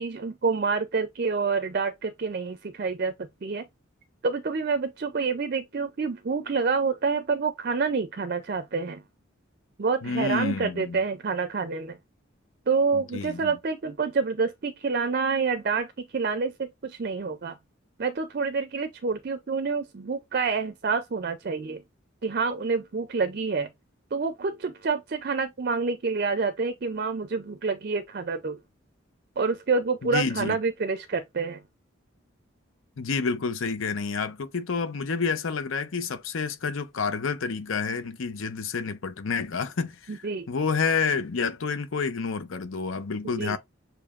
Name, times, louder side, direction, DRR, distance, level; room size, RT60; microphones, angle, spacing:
voice 1, 0.0-3.7 4.2-9.0 9.8-12.0 12.7-17.6 18.0-21.8 22.2-23.7 24.1-28.6 29.4-31.6 40.1-40.5 43.4-43.6, right 4 dB, 45° right, 0.4 m, -28 dB
voice 2, 10.0-11.0 12.9-13.5 30.0-30.6 33.0-43.6, left 5 dB, 75° left, 0.6 m, -29 dB
6.7 x 3.0 x 2.4 m
head